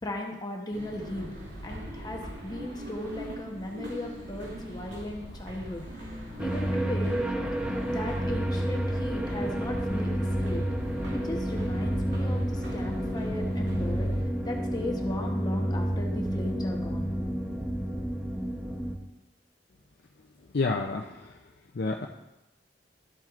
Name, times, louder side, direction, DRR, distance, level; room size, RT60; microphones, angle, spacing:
voice 1, 0.0-1.3 1.6-5.8 6.4-7.2 7.7-10.6 11.1-14.1 14.4-17.1, left 1 dB, 25° left, 1 dB, 1.0 m, -37 dB
sound 1, 0.7-14.2, equal, 70° right, 2.6 m, -39 dB
sound 2, 6.4-18.9, equal, 5° right, 0.8 m, -30 dB
voice 2, 20.5-21.3 21.7-22.1, left 3 dB, 65° left, 0 dB, 0.6 m, -29 dB
12.5 x 7.5 x 2.5 m, 0.94 s
head